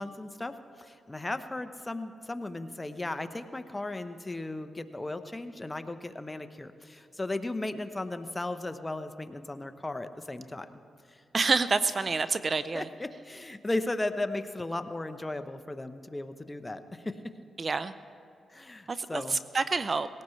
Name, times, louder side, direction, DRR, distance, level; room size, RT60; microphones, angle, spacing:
voice 1, 0.0-10.7 11.1-11.2 12.7-17.3 18.5-19.4, left 2 dB, 20° left, 10 dB, 0.9 m, -36 dB
voice 2, 11.3-12.9 17.6-17.9 18.9-20.1, right 4 dB, 45° right, 13 dB, 0.5 m, -28 dB
19.5 x 17.5 x 3.2 m, 2.4 s
supercardioid pair, 55°, 0 cm